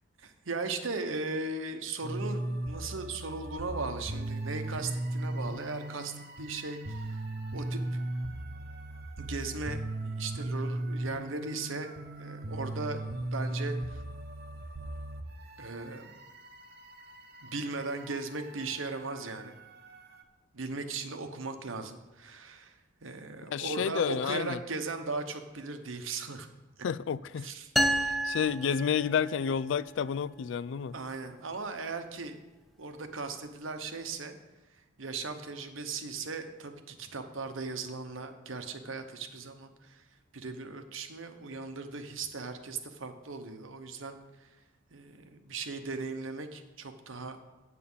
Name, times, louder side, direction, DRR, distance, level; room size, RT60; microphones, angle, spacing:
voice 1, 0.2-7.2 7.5-7.8 9.2-11.9 12.2-14.0 15.6-16.1 17.4-19.5 20.5-26.5 27.4-27.7 30.9-32.4 32.8-34.4 35.0-40.0 40.3-44.5 44.9-47.4, right 3 dB, 80° right, 1.0 m, -38 dB
sound 1, 2.0-20.2, right 1 dB, 55° right, 0.9 m, -38 dB
voice 2, 23.5-24.6 26.8-27.5 28.0-30.9, left 7 dB, 65° left, 0.3 m, -30 dB
sound 2, 27.8-29.5, right 1 dB, ahead, 0.4 m, -30 dB
8.4 x 8.3 x 5.6 m
head